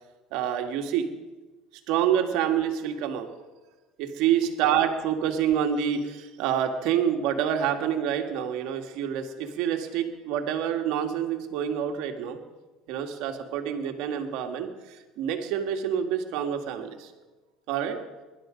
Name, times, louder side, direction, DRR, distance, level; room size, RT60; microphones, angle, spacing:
voice 1, 0.3-1.1 1.9-3.3 4.0-12.4 12.9-17.1 17.7-18.0, right 9 dB, 70° right, 5 dB, 1.8 m, -27 dB
20.5 x 11.0 x 5.2 m, 1.2 s
cardioid pair, 135°, 0 cm